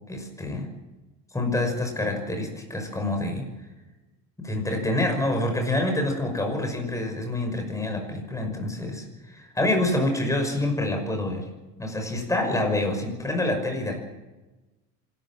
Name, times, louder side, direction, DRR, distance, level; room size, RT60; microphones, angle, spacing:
voice 1, 0.1-0.7 1.3-3.5 4.4-11.5 11.8-14.0, left 1 dB, 10° left, 3 dB, 5.9 m, -27 dB
26.5 x 13.5 x 7.6 m, 1.1 s
cardioid pair, 140°, 34 cm